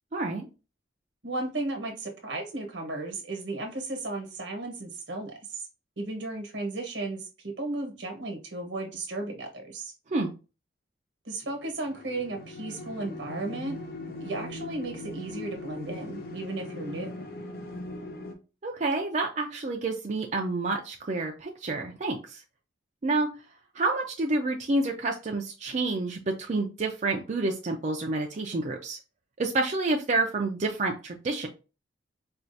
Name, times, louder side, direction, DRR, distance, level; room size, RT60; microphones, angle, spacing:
voice 1, 0.1-0.5 10.1-10.3 18.6-22.4 23.0-23.3 23.8-29.0 29.4-31.5, right 2 dB, 40° right, 1 dB, 0.4 m, -28 dB
voice 2, 1.2-5.6 6.0-9.9 11.2-13.8 14.2-17.3, right 2 dB, 85° right, 2 dB, 1.1 m, -35 dB
sound 1, 11.4-18.3, left 2 dB, 55° left, 0.7 m, -40 dB
4.4 x 2.4 x 2.6 m, 0.31 s
head